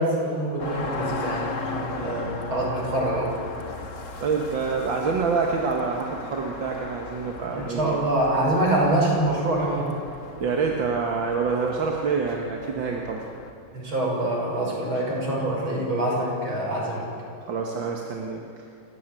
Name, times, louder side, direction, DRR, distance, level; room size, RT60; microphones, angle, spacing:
voice 1, 0.0-3.3 7.5-9.9 13.7-17.1, right 1 dB, 85° right, -3 dB, 6.9 m, -25 dB
sound 1, 0.6-13.5, left 4 dB, 40° left, 1.7 m, -37 dB
voice 2, 4.2-8.1 10.4-13.2 17.5-18.4, right 5 dB, 70° right, 0 dB, 2.2 m, -26 dB
28.5 x 14.5 x 9.1 m, 2.6 s
omnidirectional pair, 2.2 m